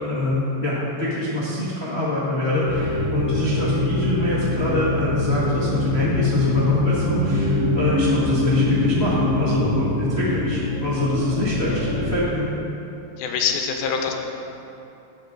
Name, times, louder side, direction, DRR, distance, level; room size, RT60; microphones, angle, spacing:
voice 1, 0.0-12.5, left 2 dB, 40° left, -8 dB, 0.9 m, -24 dB
sound 1, 2.7-12.1, left 1 dB, 10° right, 0.9 m, -24 dB
voice 2, 13.2-14.1, left 6 dB, 85° left, 3 dB, 2.7 m, -24 dB
16.5 x 6.5 x 4.0 m, 2.8 s
omnidirectional pair, 4.1 m